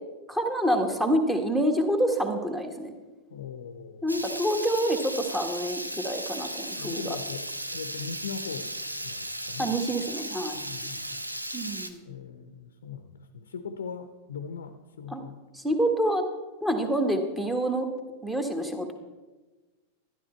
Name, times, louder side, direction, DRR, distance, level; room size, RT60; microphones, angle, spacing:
voice 1, 0.3-2.9 4.0-7.2 9.6-10.5 11.5-12.1 15.1-15.2 15.5-16.2 16.6-17.9 18.2-18.9, right 1 dB, 5° right, 5 dB, 1.5 m, -27 dB
voice 2, 3.3-4.1 6.8-7.5 7.7-8.7 9.0-9.7 10.5-11.2 12.1-15.4, left 6 dB, 65° left, 9 dB, 0.7 m, -40 dB
Water tap faucet / Liquid, 4.1-11.9, right 1 dB, 85° right, 0.7 m, -36 dB
12.5 x 11.5 x 4.5 m, 1.2 s
figure-of-eight pair, 90°, 0 cm